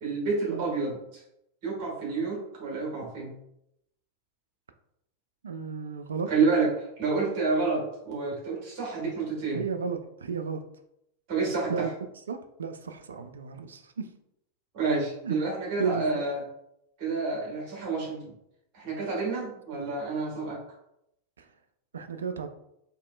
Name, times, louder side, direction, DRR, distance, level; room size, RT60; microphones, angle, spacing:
voice 1, 0.0-1.2 1.6-3.4 6.3-9.6 11.3-11.9 14.7-16.4 17.0-18.3 18.7-20.6, right 4 dB, 45° right, -3 dB, 1.5 m, -29 dB
voice 2, 5.4-6.3 9.5-10.6 11.7-11.9 12.3-14.1 15.2-15.4 15.8-16.2 19.8-19.9 21.4-21.5 21.9-22.5, right 6 dB, 70° right, 7 dB, 0.3 m, -33 dB
4.2 x 3.0 x 2.3 m, 0.80 s
figure-of-eight pair, 90°, 0 cm